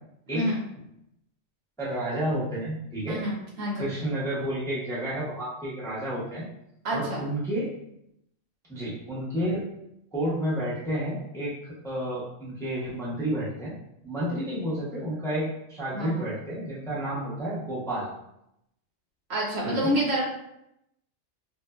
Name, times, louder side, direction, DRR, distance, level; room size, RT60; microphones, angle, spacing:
voice 1, 1.8-3.2 3.8-6.4 6.9-7.7 8.7-9.6 10.1-13.7 14.0-18.1 19.6-19.9, right 1 dB, 5° left, -8 dB, 0.5 m, -30 dB
voice 2, 3.1-3.9 6.8-7.2 15.9-16.2 19.3-20.2, equal, 70° right, -2 dB, 0.9 m, -28 dB
3.2 x 2.0 x 2.2 m, 0.80 s
omnidirectional pair, 1.2 m